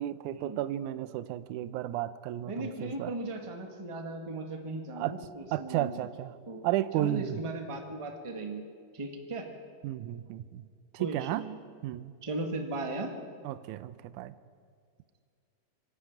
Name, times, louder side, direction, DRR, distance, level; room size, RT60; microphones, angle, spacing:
voice 1, 0.0-3.1 5.0-5.1 5.5-6.3 6.6-7.4 9.8-10.6 10.9-11.4 11.8-12.1 13.5-14.4, right 14 dB, 80° right, 13 dB, 1.9 m, -33 dB
voice 2, 2.5-5.9 6.5-6.7 6.9-8.6 8.9-9.5 11.0-11.6 12.2-13.1, right 2 dB, 20° right, 3 dB, 0.7 m, -37 dB
25.0 x 11.5 x 8.9 m, 2.1 s
omnidirectional pair, 4.0 m